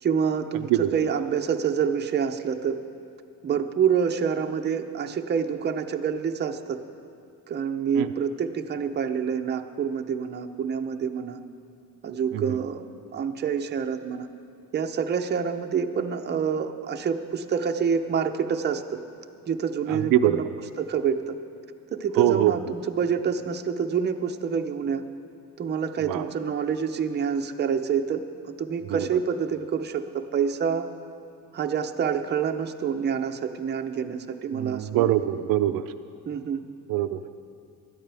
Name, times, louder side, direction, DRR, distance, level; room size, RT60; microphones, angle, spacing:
voice 1, 0.0-2.8 3.4-6.8 7.5-11.4 12.0-14.3 14.7-19.0 19.5-20.4 20.8-21.4 21.9-22.6 22.9-25.0 25.6-30.9 31.5-35.0 36.3-36.6, right 7 dB, 30° right, 6 dB, 0.7 m, -27 dB
voice 2, 19.9-20.4 22.2-22.5 26.0-26.3 28.9-29.1 34.5-35.9 36.9-37.2, right 13 dB, 80° right, 9 dB, 0.5 m, -23 dB
19.5 x 13.0 x 3.4 m, 2.4 s
cardioid pair, 130°, 33 cm